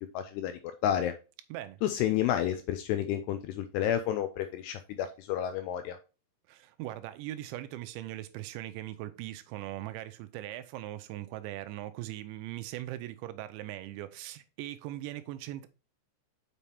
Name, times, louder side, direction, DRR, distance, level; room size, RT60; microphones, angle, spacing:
voice 1, 0.1-1.1 1.8-6.0, left 10 dB, 80° left, 2.5 m, -30 dB
voice 2, 1.5-1.8 6.5-15.7, right 14 dB, 90° right, 3.0 m, -40 dB
7.2 x 5.7 x 3.4 m
omnidirectional pair, 5.1 m